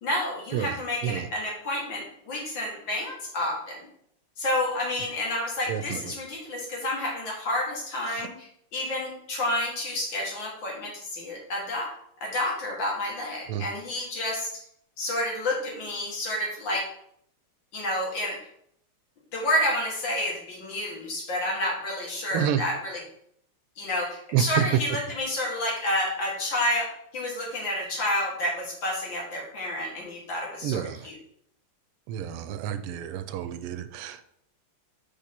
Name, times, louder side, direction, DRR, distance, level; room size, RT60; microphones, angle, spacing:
voice 1, 0.0-3.9 4.4-11.9 12.2-14.5 15.0-16.9 17.7-18.4 19.3-23.0 23.8-31.2, left 1 dB, 60° left, -2 dB, 2.3 m, -29 dB
voice 2, 5.7-6.0 8.1-8.3 13.5-13.6 22.3-22.6 24.3-24.7 30.6-31.1 32.1-34.3, right 10 dB, 85° right, 11 dB, 1.5 m, -29 dB
5.3 x 5.1 x 4.3 m, 0.70 s
omnidirectional pair, 2.4 m